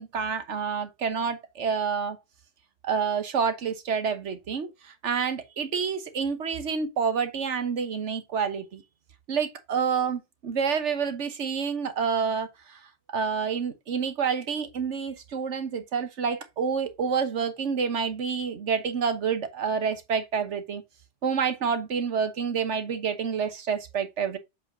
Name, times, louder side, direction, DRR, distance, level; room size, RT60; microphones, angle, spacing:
voice 1, 0.0-2.2 2.8-8.8 9.3-12.8 13.1-20.8 21.2-24.4, right 6 dB, 70° right, 1.4 m, -28 dB
7.6 x 4.8 x 2.7 m
omnidirectional pair, 1.2 m